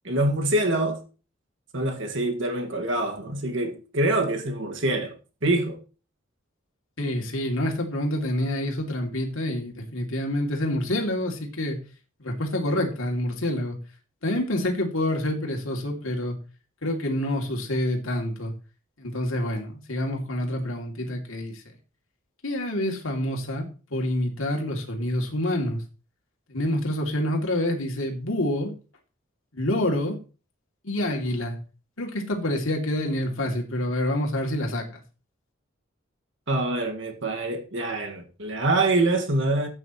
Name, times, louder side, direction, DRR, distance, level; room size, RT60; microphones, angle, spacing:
voice 1, 0.0-1.0 1.7-5.2 5.4-5.8 36.5-39.7, right 2 dB, 65° right, 1.9 m, -25 dB
voice 2, 7.0-11.8 12.2-13.8 14.2-16.4 16.8-18.5 19.0-21.6 22.4-25.8 26.5-28.7 29.5-30.2 30.8-31.6 32.0-35.0, left 1 dB, 85° left, 2.8 m, -27 dB
14.5 x 9.0 x 3.1 m
head